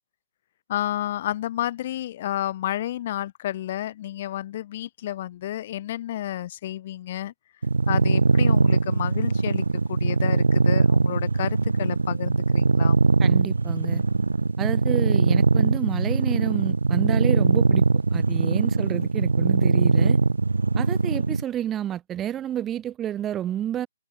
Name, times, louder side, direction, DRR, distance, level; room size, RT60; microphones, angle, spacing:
voice 1, 0.7-7.3 7.9-9.6 9.9-13.0, left 13 dB, 45° left, 0.6 m, -31 dB
sound 1, 7.6-21.4, right 3 dB, 85° right, 0.5 m, -21 dB
voice 2, 13.2-14.0 14.6-17.8 18.1-20.2 20.8-23.9, right 11 dB, 15° right, 1.9 m, -29 dB
figure-of-eight pair, 135°, 0 cm